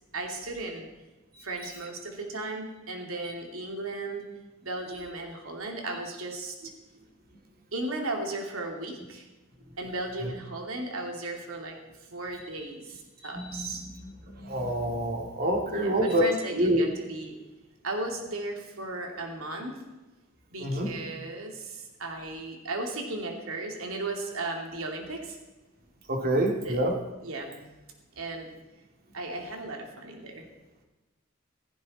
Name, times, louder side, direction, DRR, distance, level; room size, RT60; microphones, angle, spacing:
voice 1, 0.1-0.9 1.4-4.2 4.6-6.6 7.7-9.3 9.8-11.8 12.1-13.8 15.6-17.4 17.8-19.8 20.5-25.4 26.6-26.8 27.2-27.6 28.2-28.5 29.1-30.4, right 2 dB, 80° right, 2 dB, 2.7 m, -35 dB
voice 2, 13.2-13.7 14.4-16.3 16.5-16.8 20.6-20.9 26.1-26.9, right 1 dB, 45° right, 2 dB, 2.8 m, -26 dB
16.5 x 15.5 x 4.3 m, 1.1 s
head